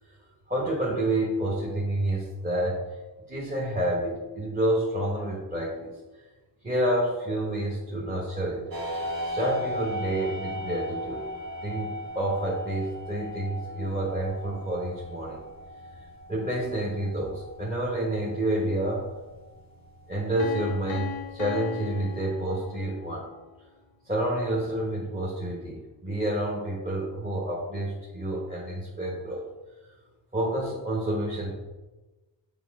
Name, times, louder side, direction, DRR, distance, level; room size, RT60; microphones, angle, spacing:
voice 1, 0.5-2.8 3.3-5.9 6.6-8.7 9.2-11.3 11.6-15.4 16.3-19.0 20.1-23.2 24.0-29.5 30.3-31.5, right 1 dB, 20° right, -5 dB, 1.0 m, -29 dB
sound 1, 8.7-22.3, equal, 50° right, 1.2 m, -38 dB
Piano, 20.4-23.2, left 6 dB, 90° left, 0.7 m, -37 dB
6.8 x 4.5 x 3.5 m, 1.2 s
wide cardioid pair, 135°, 45 cm